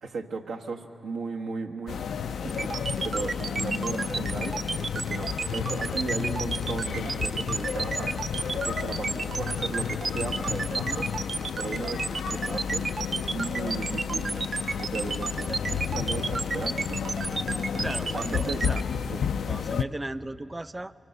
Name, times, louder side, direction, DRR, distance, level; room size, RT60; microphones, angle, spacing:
voice 1, 0.0-2.0 2.4-4.7 4.9-8.1 8.5-11.1 11.6-12.9 13.2-14.4 14.8-17.8 18.1-18.6 19.1-19.2, right 4 dB, 90° right, 2 dB, 1.3 m, -36 dB
sound 1, 1.9-19.8, left 7 dB, 85° left, 0.4 m, -32 dB
sound 2, 2.5-18.8, right 4 dB, 60° right, 0.7 m, -32 dB
voice 2, 17.8-18.8 19.4-20.9, right 1 dB, 25° right, 13 dB, 0.4 m, -36 dB
24.0 x 24.0 x 6.7 m, 2.9 s
supercardioid pair, 45°, 0 cm